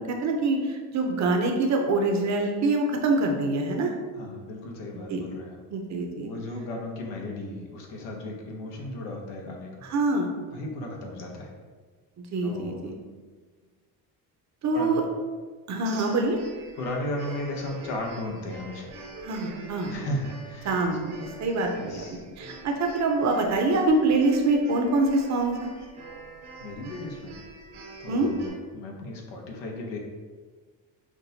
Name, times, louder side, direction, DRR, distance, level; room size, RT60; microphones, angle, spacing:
voice 1, 0.0-3.9 5.1-5.2 5.7-6.3 9.9-10.3 12.2-12.9 14.6-15.0 15.7-16.4 19.2-19.9 20.6-21.1 21.4-25.7 28.1-28.3, right 2 dB, 40° right, 2 dB, 0.7 m, -25 dB
voice 2, 4.1-5.6 6.2-9.8 10.5-11.5 12.4-12.8 14.7-14.9 16.8-19.0 19.9-20.7 21.7-22.2 26.6-27.3 28.0-30.0, left 1 dB, 90° left, 0 dB, 0.9 m, -35 dB
sound 1, 15.8-28.5, right 3 dB, 75° right, 1.2 m, -45 dB
6.0 x 2.2 x 2.7 m, 1.4 s
cardioid pair, 105°, 41 cm